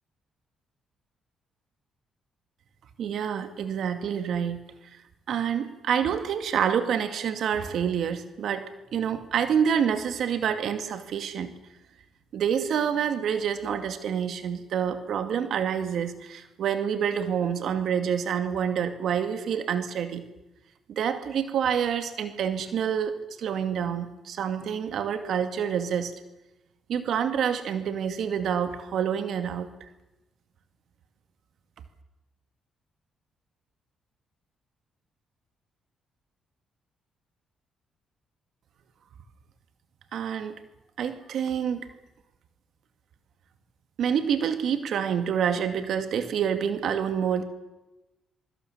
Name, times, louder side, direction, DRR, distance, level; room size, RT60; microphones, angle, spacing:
voice 1, 3.0-4.6 5.3-11.5 12.3-20.2 20.9-26.1 26.9-29.7 40.1-40.5 41.0-41.9 44.0-47.4, right 8 dB, 70° right, 8 dB, 2.2 m, -27 dB
24.5 x 24.0 x 7.3 m, 1.0 s
supercardioid pair, 65°, 0 cm